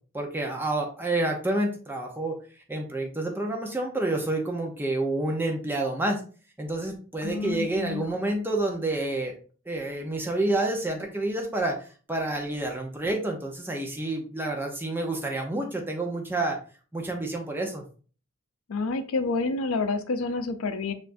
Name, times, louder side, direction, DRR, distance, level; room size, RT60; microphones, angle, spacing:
voice 1, 0.1-2.4 2.7-6.2 6.6-9.4 9.7-16.6 16.9-17.8, right 2 dB, 10° right, 1 dB, 0.7 m, -29 dB
voice 2, 7.2-8.2 18.7-20.9, left 3 dB, 85° left, 10 dB, 0.5 m, -29 dB
6.9 x 2.5 x 2.6 m, 0.39 s
head